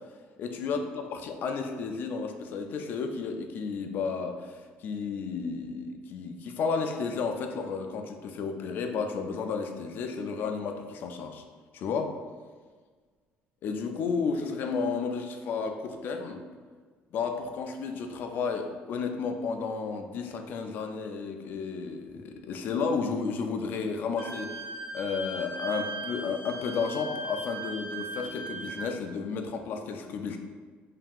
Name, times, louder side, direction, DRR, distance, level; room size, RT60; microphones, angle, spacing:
voice 1, 0.4-0.8 1.1-11.4 11.7-12.2 13.6-16.4 17.1-24.7 24.9-30.4, left 5 dB, 55° left, 5 dB, 0.3 m, -32 dB
Wind instrument woodwind instrument, 24.2-28.8, right 2 dB, 80° right, 1.1 m, -38 dB
3.6 x 2.7 x 2.3 m, 1.5 s
cardioid pair, 140°, 4 cm